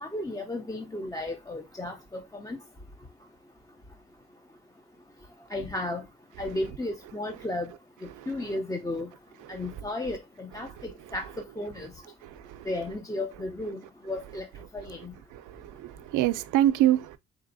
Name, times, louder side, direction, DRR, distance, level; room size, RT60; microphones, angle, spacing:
voice 1, 0.0-2.6 5.5-6.0 6.4-7.7 8.3-9.1 9.5-11.3 11.6-11.9 12.7-14.5 14.7-15.1, left 2 dB, 10° left, 0.5 m, -34 dB
voice 2, 15.5-17.2, right 13 dB, 85° right, 0.5 m, -25 dB
4.0 x 3.4 x 2.5 m
cardioid pair, 90°, 30 cm